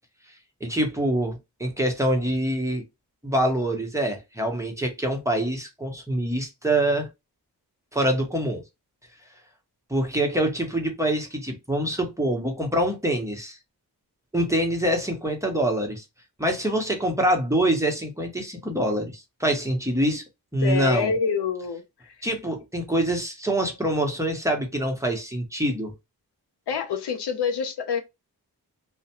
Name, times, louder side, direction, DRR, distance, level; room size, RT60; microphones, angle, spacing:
voice 1, 0.6-2.8 3.2-7.1 7.9-8.6 9.9-13.6 14.3-16.0 16.4-20.2 20.5-21.1 22.2-25.9, right 1 dB, 5° right, 1.0 m, -25 dB
voice 2, 20.6-22.1 26.7-28.0, left 5 dB, 80° left, 0.6 m, -26 dB
2.4 x 2.2 x 2.9 m
cardioid pair, 40°, 40 cm